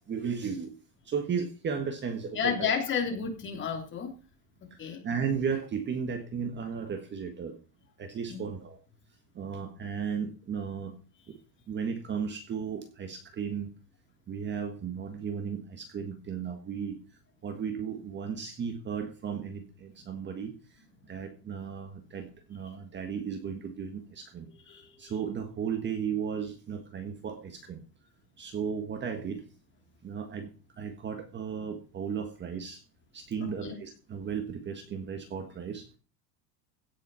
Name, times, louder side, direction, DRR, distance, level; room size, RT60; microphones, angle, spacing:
voice 1, 0.1-0.7 1.0-2.7 4.7-7.6 8.0-8.8 9.3-10.9 11.3-11.4 11.7-13.7 14.3-17.0 17.4-24.5 25.0-27.8 28.4-29.4 30.0-30.5 30.8-32.8 33.1-36.0, right 6 dB, 20° right, 7 dB, 1.6 m, -35 dB
voice 2, 2.3-4.1 4.8-5.0 8.3-8.4 22.7-22.8 24.7-25.1 33.4-33.8, left 6 dB, 25° left, 3 dB, 3.3 m, -32 dB
16.5 x 7.5 x 5.6 m, 0.35 s
cardioid pair, 165°, 50 cm